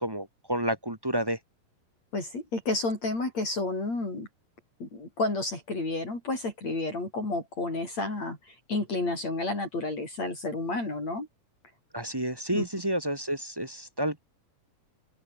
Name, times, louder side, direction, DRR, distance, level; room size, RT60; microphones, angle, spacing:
voice 1, 0.0-1.4 11.9-14.2, right 1 dB, 10° right, 1.1 m, -30 dB
voice 2, 2.1-4.3 4.8-11.3 12.5-12.7, left 2 dB, 50° left, 9.4 m, -31 dB
open air
omnidirectional pair, 4.0 m